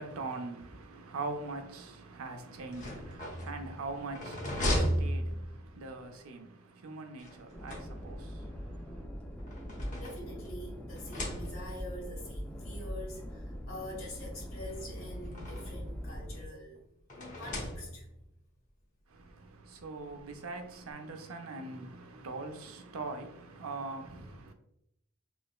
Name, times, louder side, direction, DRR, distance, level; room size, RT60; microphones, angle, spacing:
voice 1, 0.0-9.1 19.1-24.5, right 3 dB, 80° right, 0.6 m, -42 dB
sound 1, 2.6-5.9 7.2-8.4 9.2-10.6 11.0-11.9 12.8-12.9 13.3-13.4 14.5-15.9 17.1-18.3, equal, 35° left, 0.8 m, -36 dB
sound 2, 7.5-16.4, equal, 5° left, 0.4 m, -42 dB
voice 2, 9.9-16.9 17.4-18.1, left 1 dB, 80° left, 1.4 m, -45 dB
3.2 x 2.9 x 2.3 m
head